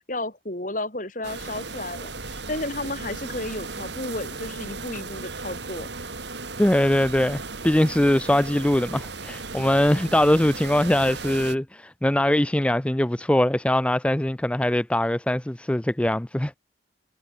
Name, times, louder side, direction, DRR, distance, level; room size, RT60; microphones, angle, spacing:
voice 1, 0.1-5.9, left 2 dB, 45° left, 3.6 m, -32 dB
sound 1, 1.2-11.6, right 3 dB, 65° right, 3.8 m, -36 dB
voice 2, 6.6-16.6, left 1 dB, 5° left, 0.4 m, -22 dB
head